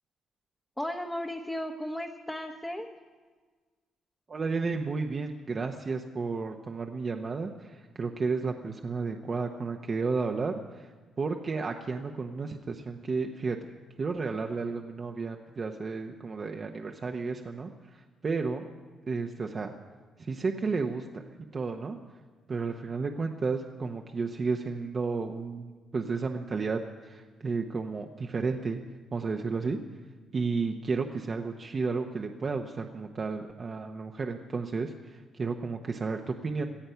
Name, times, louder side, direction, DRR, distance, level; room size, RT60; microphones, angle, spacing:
voice 1, 0.8-2.9, left 1 dB, 10° left, 0 dB, 1.1 m, -35 dB
voice 2, 4.3-10.9 11.2-13.6 14.0-18.7 19.1-19.7 20.2-21.2 21.5-22.0 22.5-28.8 29.1-29.8 30.3-36.6, right 4 dB, 40° right, 3 dB, 0.9 m, -32 dB
17.0 x 13.0 x 5.7 m, 1.4 s
cardioid pair, 90°, 0 cm